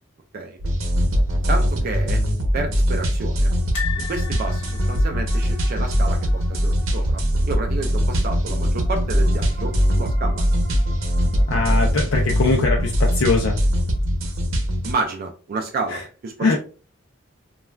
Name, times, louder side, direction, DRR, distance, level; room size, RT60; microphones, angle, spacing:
sound 1, 0.6-14.9, equal, 80° right, 0.7 m, -21 dB
voice 1, 1.5-2.2 2.5-3.5 4.0-7.2 7.5-10.4 14.8-16.6, right 3 dB, 45° right, 0.3 m, -30 dB
sound 2, 3.7-6.8 7.1-7.3 7.5-7.6 8.9-9.4 9.9-10.0, left 9 dB, 60° left, 1.1 m, -35 dB
voice 2, 11.5-13.6 15.9-16.0 16.4-16.6, left 3 dB, 80° left, 0.5 m, -21 dB
3.2 x 2.3 x 2.2 m
head